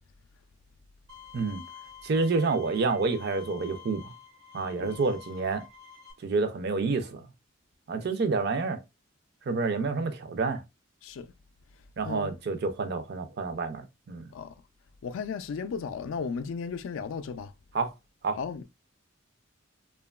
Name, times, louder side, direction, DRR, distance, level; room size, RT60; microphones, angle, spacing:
Bowed string instrument, 1.1-6.1, left 7 dB, 80° right, 0.9 m, -49 dB
voice 1, 2.0-4.1 4.5-5.6 6.2-7.3 7.9-8.8 9.5-10.6 12.0-14.3 17.7-17.9 18.2-18.4, right 4 dB, 55° right, 0.4 m, -28 dB
voice 2, 15.0-17.5 18.4-18.6, left 5 dB, 75° left, 0.3 m, -35 dB
2.8 x 2.2 x 2.2 m
head